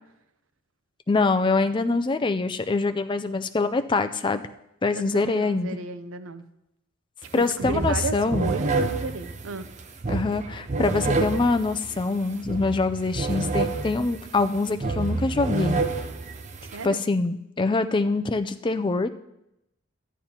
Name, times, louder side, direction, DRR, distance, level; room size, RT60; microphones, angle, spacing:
voice 1, 1.1-4.4 4.8-5.8 7.3-8.5 10.1-15.8 16.8-19.1, left 3 dB, 25° left, 10 dB, 0.4 m, -24 dB
voice 2, 5.0-6.4 7.4-9.7 16.6-17.0, right 3 dB, 75° right, 11 dB, 0.6 m, -34 dB
sound 1, 7.2-7.4 7.6-16.9, right 3 dB, 35° right, 0.6 m, -29 dB
13.0 x 10.5 x 2.9 m, 0.85 s
head